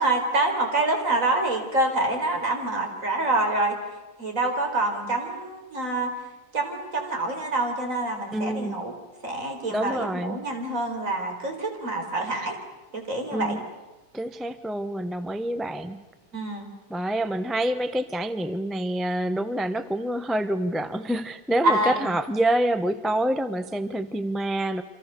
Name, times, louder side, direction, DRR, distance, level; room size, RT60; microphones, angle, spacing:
voice 1, 0.0-3.8 4.2-6.1 6.5-8.9 9.2-12.6 12.9-13.6 16.3-16.7 21.6-22.1, right 2 dB, 50° right, 3 dB, 4.8 m, -26 dB
voice 2, 8.3-8.8 9.7-10.4 13.3-13.6 14.1-16.0 16.9-24.8, right 1 dB, ahead, 10 dB, 0.7 m, -27 dB
28.5 x 26.0 x 6.8 m, 1.1 s
omnidirectional pair, 1.7 m